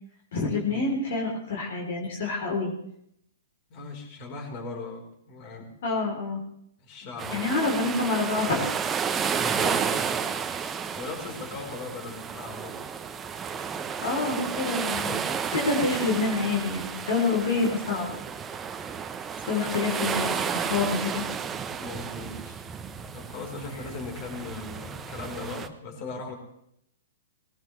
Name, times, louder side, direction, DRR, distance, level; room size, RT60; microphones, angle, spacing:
voice 1, 0.3-2.7 5.8-6.4 7.3-8.7 14.0-18.1 19.4-21.2, left 3 dB, 60° left, -1 dB, 3.6 m, -27 dB
voice 2, 3.7-5.7 6.8-7.5 9.2-10.2 10.9-12.8 21.8-22.4 23.1-26.3, left 3 dB, 40° left, 2 dB, 4.4 m, -38 dB
sound 1, 7.2-25.7, right 7 dB, 15° right, 1.0 m, -32 dB
20.0 x 18.5 x 3.4 m, 0.73 s
figure-of-eight pair, 115°, 0 cm